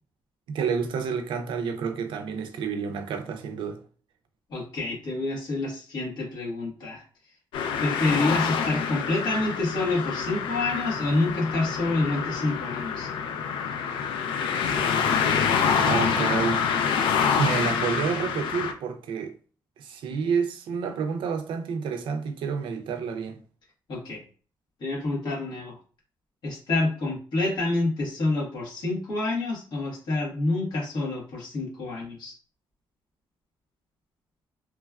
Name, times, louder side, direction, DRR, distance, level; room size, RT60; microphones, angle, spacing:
voice 1, 0.5-3.8 15.8-16.7 17.3-19.4 19.8-23.4, right 6 dB, 75° right, 0.4 m, -29 dB
voice 2, 4.5-7.0 7.8-13.1 23.9-24.2 24.8-25.8 26.4-32.3, left 2 dB, 60° left, 1.3 m, -28 dB
sound 1, 7.5-18.7, left 7 dB, 85° left, 0.4 m, -26 dB
3.0 x 2.3 x 2.3 m
cardioid pair, 145°, 8 cm